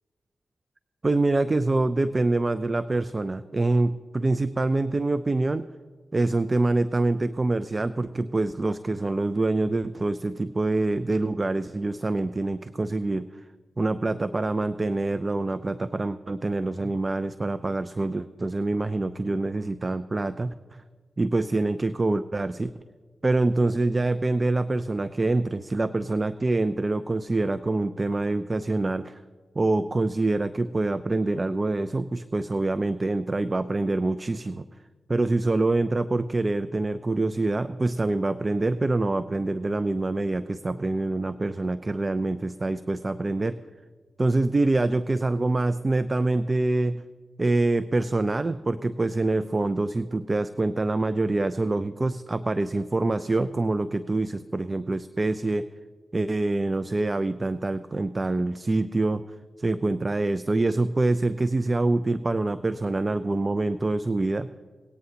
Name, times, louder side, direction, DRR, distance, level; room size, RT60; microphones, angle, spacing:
voice 1, 1.0-5.7 6.1-13.3 13.8-20.8 21.2-22.7 23.2-29.2 29.6-34.7 35.1-43.6 44.2-47.0 47.4-55.7 56.1-59.2 59.6-64.5, right 2 dB, 35° right, 14 dB, 0.4 m, -25 dB
19.0 x 9.1 x 2.8 m, 1.5 s
supercardioid pair, 40°, 0 cm